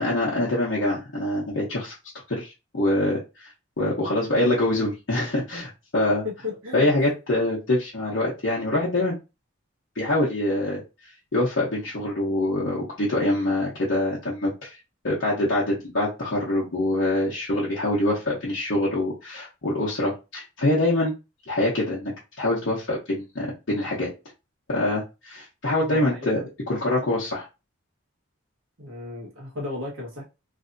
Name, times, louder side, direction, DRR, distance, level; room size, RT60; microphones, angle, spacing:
voice 1, 0.0-1.9 2.3-3.5 3.8-6.2 6.7-9.1 9.9-10.8 11.3-14.7 15.0-21.1 21.5-24.1 24.7-26.4 26.7-27.5, left 1 dB, 65° left, 0.9 m, -25 dB
voice 2, 6.2-6.9 25.8-26.5 28.8-30.2, left 3 dB, 85° right, 1.5 m, -34 dB
3.2 x 2.7 x 2.6 m
head